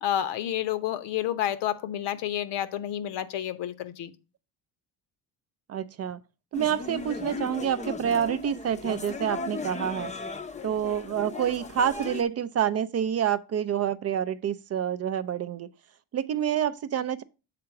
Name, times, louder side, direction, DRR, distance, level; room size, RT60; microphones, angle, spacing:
voice 1, 0.0-4.1, left 11 dB, 70° left, 0.8 m, -30 dB
voice 2, 5.7-6.2 6.5-10.1 10.6-15.7 16.1-17.2, right 9 dB, 40° right, 0.4 m, -28 dB
sound 1, 6.5-12.2, left 4 dB, 15° left, 0.5 m, -37 dB
6.8 x 3.8 x 5.7 m
cardioid pair, 100°, 43 cm